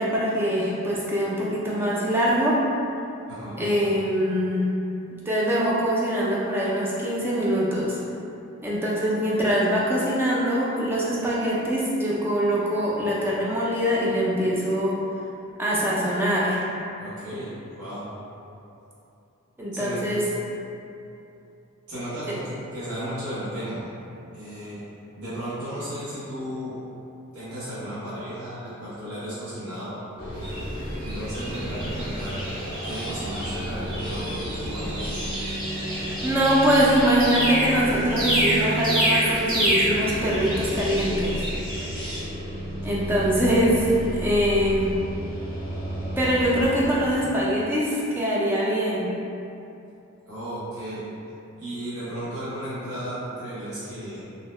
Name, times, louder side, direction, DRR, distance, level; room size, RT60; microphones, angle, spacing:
voice 1, 0.0-2.6 3.6-4.7 5.3-8.0 8.6-15.0 15.6-16.6 19.6-20.2 22.3-22.4 36.2-41.4 42.8-45.0 46.2-49.1, equal, 10° right, -6 dB, 0.3 m, -23 dB
voice 2, 3.3-3.7 17.0-18.1 19.7-20.0 21.9-23.9 24.3-24.9 25.2-26.8 27.3-30.0 31.0-32.4 32.8-35.1 50.3-51.1 51.6-54.2, equal, 85° right, -12 dB, 0.9 m, -34 dB
sound 1, 30.2-47.2, right 1 dB, 45° left, 0.6 m, -32 dB
sound 2, 30.4-42.2, equal, 40° right, 0.9 m, -29 dB
2.6 x 2.1 x 3.0 m, 2.8 s
head